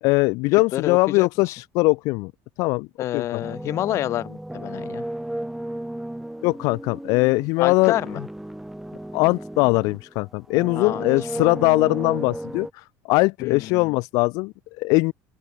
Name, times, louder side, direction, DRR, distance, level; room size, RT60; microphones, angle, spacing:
voice 1, 0.0-2.3 2.6-2.9 3.1-3.4 6.4-7.9 9.1-15.1, left 25 dB, 75° left, 0.9 m, -21 dB
voice 2, 0.7-1.5 3.0-5.0 7.6-8.2 10.7-11.2 13.4-14.0, left 13 dB, 50° left, 1.6 m, -28 dB
sound 1, 3.4-10.1 10.5-12.7, right 1 dB, 5° right, 2.7 m, -34 dB
open air
cardioid pair, 150°, 6 cm